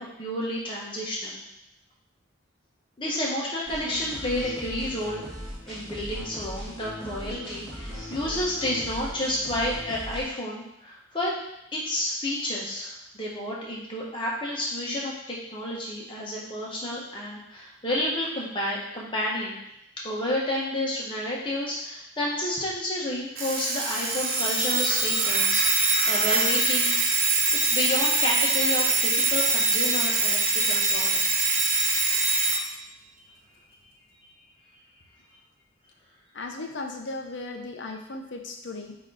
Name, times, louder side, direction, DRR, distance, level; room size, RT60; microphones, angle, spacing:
voice 1, 0.0-1.4 3.0-5.2 5.7-11.4 11.7-19.6 20.0-27.0 27.7-30.4 30.7-31.5, left 1 dB, 25° left, -4 dB, 1.4 m, -30 dB
sound 1, 3.7-10.2, equal, 5° left, 2.0 m, -38 dB
Alarm, 23.4-32.6, right 3 dB, 50° right, 1.1 m, -23 dB
voice 2, 36.3-39.0, left 2 dB, 65° left, 3 dB, 0.8 m, -36 dB
8.2 x 3.0 x 4.1 m, 0.79 s
head